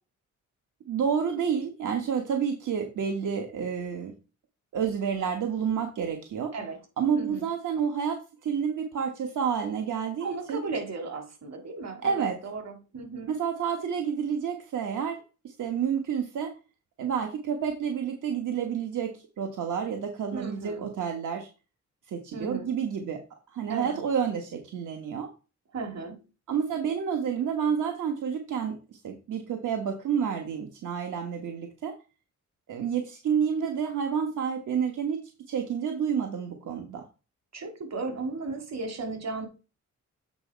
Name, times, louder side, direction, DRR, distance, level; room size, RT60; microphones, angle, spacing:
voice 1, 0.9-4.1 4.7-6.5 7.0-10.6 12.0-12.4 13.3-16.5 17.0-21.5 22.1-23.2 23.5-25.3 26.5-28.8 29.0-31.9 32.7-35.2 35.5-37.0, right 7 dB, 75° right, 4 dB, 1.3 m, -29 dB
voice 2, 7.1-7.5 10.2-13.3 20.3-20.9 22.3-22.7 23.7-24.0 25.7-26.2 37.5-39.5, right 3 dB, 60° right, 6 dB, 2.1 m, -35 dB
8.0 x 4.1 x 4.6 m, 0.32 s
cardioid pair, 100°, 31 cm